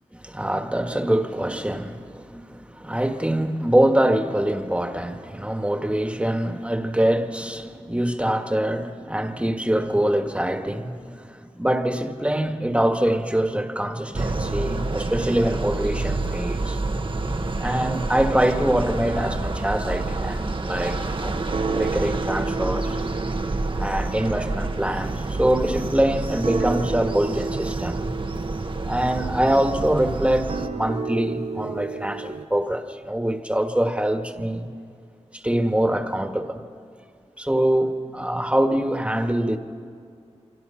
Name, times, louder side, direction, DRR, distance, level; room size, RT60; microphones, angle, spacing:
voice 1, 0.2-16.8 17.6-21.4 21.7-23.0 23.7-28.1 28.8-34.7 35.3-36.6 37.4-39.6, right 1 dB, 10° right, 1.7 m, -24 dB
sound 1, 14.1-30.7, right 2 dB, 45° right, 1.1 m, -28 dB
sound 2, 19.0-19.6 20.0-20.4 20.8-21.2 21.5-32.5, right 4 dB, 65° right, 0.7 m, -34 dB
29.0 x 25.0 x 5.8 m
wide cardioid pair, 90°, 12 cm